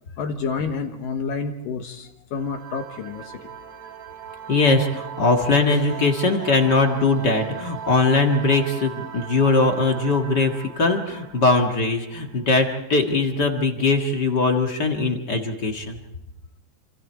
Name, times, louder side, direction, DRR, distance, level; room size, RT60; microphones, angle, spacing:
voice 1, 0.2-3.5, left 5 dB, 70° left, 5 dB, 2.8 m, -29 dB
sound 1, 2.4-12.7, right 9 dB, 55° right, 3.0 m, -38 dB
voice 2, 4.5-16.0, left 3 dB, 40° left, 3 dB, 1.5 m, -21 dB
28.0 x 26.5 x 4.6 m, 0.96 s
omnidirectional pair, 4.2 m